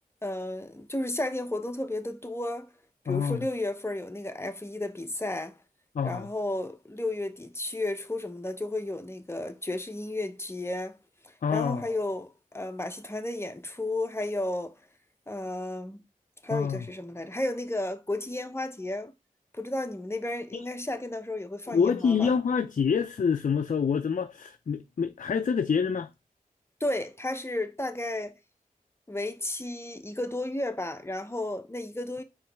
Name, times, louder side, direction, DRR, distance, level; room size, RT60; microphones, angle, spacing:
voice 1, 0.2-2.7 3.0-5.6 6.0-11.0 11.2-14.8 15.3-16.0 16.4-19.1 19.5-22.3 26.8-28.3 29.1-32.2, left 1 dB, 15° left, 0.8 m, -33 dB
voice 2, 3.1-3.4 5.9-6.3 11.4-11.8 16.5-16.8 20.5-20.6 21.7-26.1, left 6 dB, 60° left, 0.4 m, -26 dB
4.7 x 3.1 x 3.3 m
cardioid pair, 40°, 15 cm